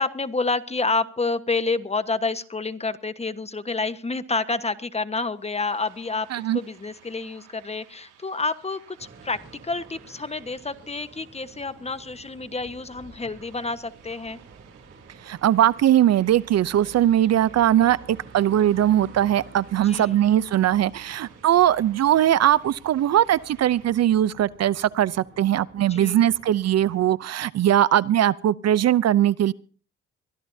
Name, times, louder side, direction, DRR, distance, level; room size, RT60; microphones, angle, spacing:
voice 1, 0.0-6.3 6.5-14.4 19.7-20.2 25.9-26.3, left 3 dB, 20° left, 1.3 m, -29 dB
sound 1, 5.3-23.9, right 9 dB, 90° right, 5.5 m, -56 dB
sound 2, 9.0-27.2, right 4 dB, 40° right, 3.2 m, -49 dB
voice 2, 15.2-29.5, right 11 dB, 55° right, 0.6 m, -20 dB
23.5 x 14.5 x 2.7 m
cardioid pair, 90°, 30 cm